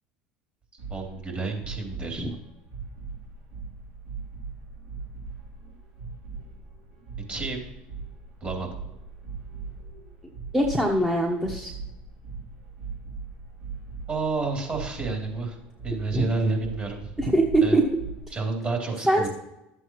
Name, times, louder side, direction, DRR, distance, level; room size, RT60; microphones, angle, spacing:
sound 1, 0.8-18.2, right 4 dB, 70° right, 3.7 m, -40 dB
voice 1, 0.9-2.3 7.3-7.6 8.4-8.7 14.1-15.6 15.8-17.1 17.6-17.8 18.3-19.3, right 3 dB, 30° right, 0 dB, 3.2 m, -29 dB
voice 2, 10.5-11.7 16.1-16.3 17.2-17.8 19.0-19.3, right 1 dB, 10° right, 0 dB, 1.1 m, -22 dB
12.0 x 7.8 x 3.1 m, 0.91 s
supercardioid pair, 90°, 5 cm